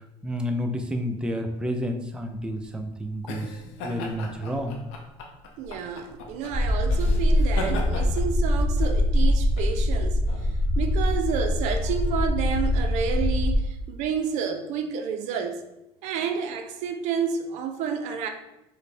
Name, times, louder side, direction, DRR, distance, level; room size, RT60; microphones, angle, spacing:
voice 1, 0.2-4.8, equal, 5° right, 0.4 m, -30 dB
sound 1, 2.2-11.4, left 2 dB, 85° left, 0.6 m, -38 dB
voice 2, 5.6-15.6 16.0-18.3, right 7 dB, 70° right, 0.4 m, -30 dB
sound 2, 6.5-13.6, left 1 dB, 30° left, 0.7 m, -23 dB
3.2 x 2.1 x 4.2 m
supercardioid pair, 90°, 13 cm